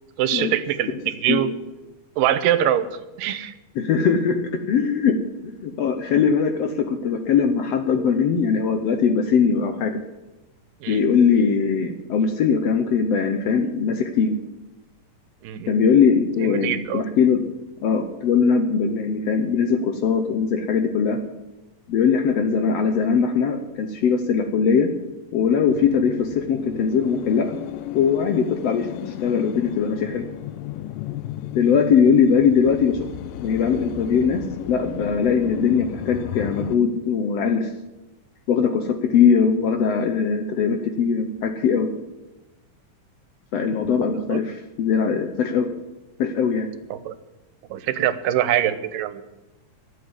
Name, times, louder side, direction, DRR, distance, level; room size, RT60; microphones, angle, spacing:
voice 1, 0.2-1.5 2.2-2.8 3.2-3.5 10.8-11.0 15.4-15.7 16.4-17.0 44.1-44.4 46.9-47.1 47.7-49.2, right 11 dB, 90° right, 13 dB, 2.5 m, -23 dB
voice 2, 3.8-4.4 4.7-5.2 5.4-10.0 10.9-14.4 15.7-17.4 17.8-21.2 21.9-24.9 25.3-27.6 27.9-30.3 31.5-33.1 33.4-34.4 34.7-37.7 38.5-41.9 43.5-45.7 46.2-46.7, left 6 dB, 70° left, 7 dB, 1.6 m, -20 dB
sound 1, 25.7-36.8, left 12 dB, 85° left, 2.3 m, -34 dB
12.5 x 8.1 x 9.6 m, 1.1 s
omnidirectional pair, 3.8 m